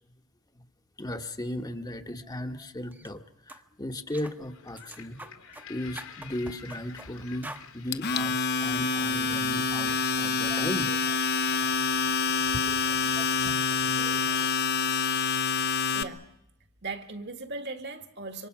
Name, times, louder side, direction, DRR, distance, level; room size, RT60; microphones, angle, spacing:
voice 1, 1.0-3.2 3.5-5.2 5.7-11.7 12.6-14.5, left 1 dB, 20° left, 1.2 m, -37 dB
sound 1, 2.9-3.1 3.5-3.6 4.1-4.4 4.8-5.7 6.0-7.1 7.4-7.7, right 1 dB, 10° right, 1.0 m, -44 dB
sound 2, 4.4-13.7, left 3 dB, 85° left, 4.3 m, -48 dB
Domestic sounds home sounds, 7.9-16.0, left 5 dB, 50° left, 0.9 m, -27 dB
voice 2, 15.9-16.3 16.8-18.5, right 3 dB, 55° right, 1.8 m, -38 dB
27.0 x 24.5 x 6.0 m
head